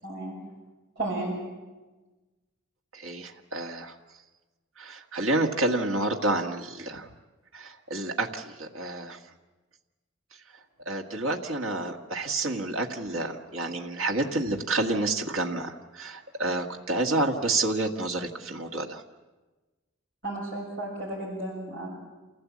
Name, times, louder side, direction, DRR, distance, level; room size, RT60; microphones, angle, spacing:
voice 1, 0.0-0.4 1.0-1.3 20.2-21.9, right 2 dB, 50° right, -7 dB, 6.5 m, -33 dB
voice 2, 2.9-3.9 4.8-7.1 7.5-9.2 10.9-19.0, right 2 dB, 85° right, 2 dB, 1.7 m, -29 dB
28.5 x 16.5 x 8.5 m, 1.2 s
head